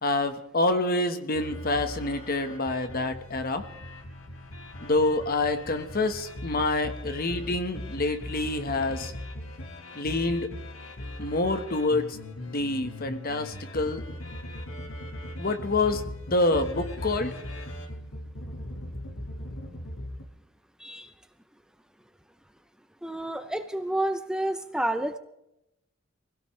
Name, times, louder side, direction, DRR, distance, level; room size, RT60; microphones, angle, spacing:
voice 1, 0.0-3.6 4.8-9.1 10.0-10.5 11.2-12.2 12.5-14.0 15.4-17.4, left 2 dB, 45° left, 8 dB, 1.3 m, -27 dB
sound 1, 1.3-20.2, left 1 dB, 75° left, 2.2 m, -39 dB
voice 2, 23.0-25.2, right 1 dB, 5° right, 9 dB, 0.6 m, -29 dB
24.5 x 17.0 x 3.3 m, 0.88 s
head